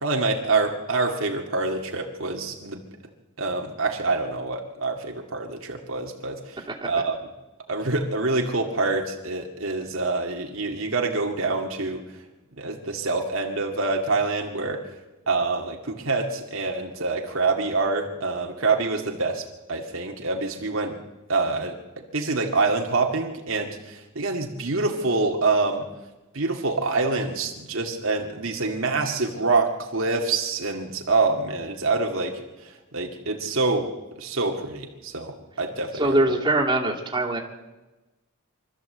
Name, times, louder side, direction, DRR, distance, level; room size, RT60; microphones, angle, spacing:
voice 1, 0.0-2.8 3.4-7.2 7.7-12.0 12.6-14.8 15.3-19.4 19.7-21.0 21.3-25.9 26.3-33.9 34.2-36.1, right 3 dB, 65° right, 2 dB, 2.1 m, -26 dB
voice 2, 35.9-37.4, right 1 dB, 20° right, -2 dB, 2.5 m, -23 dB
24.5 x 13.5 x 7.8 m, 1.1 s
head